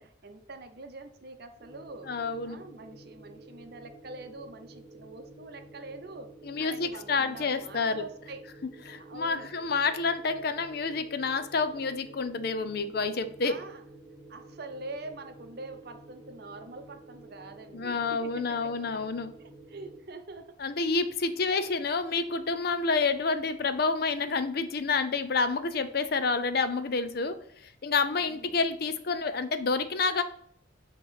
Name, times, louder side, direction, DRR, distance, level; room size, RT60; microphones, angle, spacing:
voice 1, 0.0-2.1 2.4-8.5 9.0-9.5 13.4-13.8 14.3-18.8 19.4-20.7 28.2-28.7, right 2 dB, 55° right, 7 dB, 0.7 m, -45 dB
sound 1, 1.6-20.0, right 2 dB, 5° right, 0.7 m, -51 dB
voice 2, 2.1-2.6 6.4-8.0 8.9-13.6 17.7-19.3 20.6-27.4 27.6-30.2, left 4 dB, 50° left, 11 dB, 0.5 m, -29 dB
8.0 x 3.0 x 5.6 m, 0.65 s
head